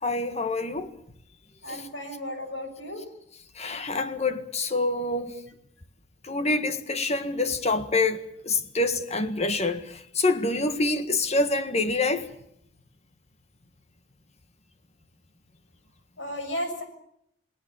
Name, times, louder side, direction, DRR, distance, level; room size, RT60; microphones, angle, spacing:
voice 1, 0.0-0.9 1.7-1.8 3.5-5.4 6.2-12.3, left 2 dB, 35° left, 1.7 m, -26 dB
voice 2, 1.6-3.0 16.2-16.8, equal, 80° left, 6.6 m, -34 dB
29.0 x 19.0 x 7.1 m
head